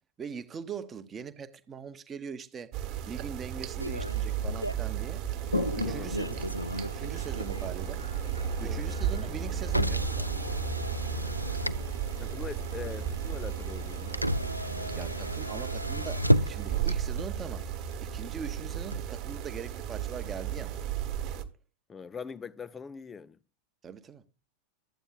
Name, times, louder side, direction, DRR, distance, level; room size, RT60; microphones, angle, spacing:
voice 1, 0.2-2.7 3.0-5.2 5.7-8.0 8.6-10.3 14.9-17.7 18.0-20.8 23.8-24.2, right 6 dB, 20° right, 0.9 m, -42 dB
sound 1, 2.7-21.4, right 9 dB, 35° right, 1.3 m, -34 dB
Motor vehicle (road), 3.8-20.9, equal, 90° right, 0.4 m, -35 dB
Toilet flush, 5.4-16.9, left 2 dB, 90° left, 1.4 m, -41 dB
voice 2, 5.8-6.5 8.6-8.9 12.2-14.2 21.9-23.4, left 6 dB, 15° left, 0.5 m, -42 dB
12.5 x 8.9 x 2.3 m
figure-of-eight pair, 90°, 0 cm